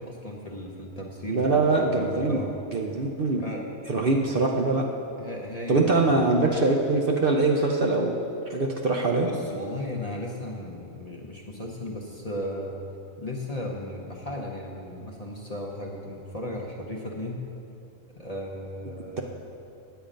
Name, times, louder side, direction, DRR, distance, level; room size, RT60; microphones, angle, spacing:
voice 1, 0.0-2.5 3.4-4.1 5.2-5.9 9.3-12.8 13.2-17.4 18.2-19.2, left 1 dB, 35° left, -1 dB, 0.8 m, -36 dB
voice 2, 1.3-2.4 2.7-3.4 3.9-4.9 5.7-8.2 8.5-9.3, right 3 dB, 50° right, 1 dB, 0.8 m, -23 dB
9.2 x 8.6 x 5.1 m, 2.7 s
omnidirectional pair, 1.4 m